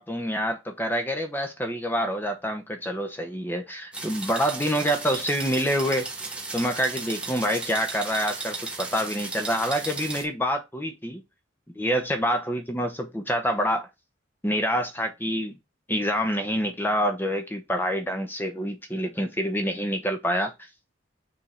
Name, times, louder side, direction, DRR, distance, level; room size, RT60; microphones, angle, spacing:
voice 1, 0.0-6.1 6.5-11.2 11.8-13.9 14.4-15.6 15.9-20.5, equal, 10° left, 0.9 m, -27 dB
sound 1, 3.9-10.3, right 3 dB, 5° right, 1.4 m, -35 dB
6.8 x 3.7 x 4.4 m
head